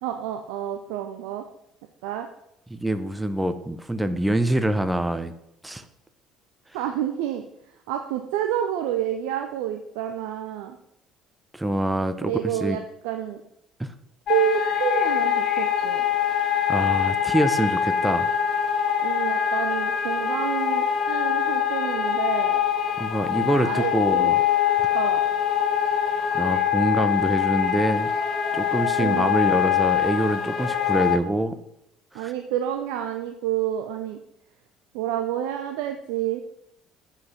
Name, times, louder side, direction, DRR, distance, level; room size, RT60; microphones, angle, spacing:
voice 1, 0.0-1.4 2.0-2.3 6.7-7.4 7.9-10.8 12.2-13.4 14.3-16.0 19.0-22.6 23.6-24.3 24.9-25.2 29.0-29.3 32.1-34.2 34.9-36.4, right 11 dB, 65° right, 6 dB, 0.6 m, -29 dB
voice 2, 2.7-5.3 5.6-5.8 11.5-12.8 13.8-13.9 16.7-18.3 23.0-24.4 26.3-28.1 28.5-31.6 32.1-32.3, right 1 dB, 10° right, 10 dB, 0.9 m, -25 dB
sound 1, 14.3-31.2, left 9 dB, 50° left, 1.0 m, -24 dB
7.9 x 5.8 x 5.8 m, 0.79 s
figure-of-eight pair, 55°, 0 cm